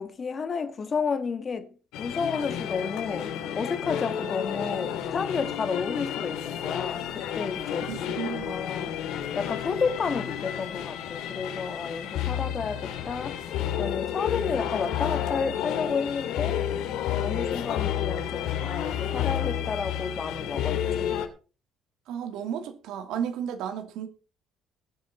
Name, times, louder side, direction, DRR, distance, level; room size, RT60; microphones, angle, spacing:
voice 1, 0.0-8.0 8.5-9.0 9.3-13.4 13.8-16.6 17.2-21.1, left 5 dB, 25° left, 1.6 m, -31 dB
sound 1, 1.9-21.3, left 10 dB, 75° left, 2.7 m, -31 dB
voice 2, 7.9-8.7 22.1-24.1, right 8 dB, 70° right, 2.7 m, -33 dB
20.0 x 8.5 x 4.3 m
cardioid pair, 165°, 0 cm